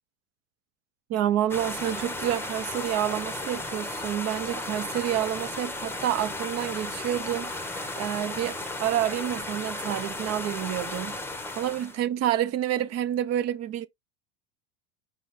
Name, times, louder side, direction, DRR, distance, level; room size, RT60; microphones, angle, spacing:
voice 1, 1.1-11.2 11.6-13.9, right 12 dB, 40° right, 0.6 m, -29 dB
sound 1, 1.5-12.0, left 2 dB, 5° left, 0.9 m, -35 dB
5.3 x 2.4 x 4.1 m
hypercardioid pair, 90°, 40 cm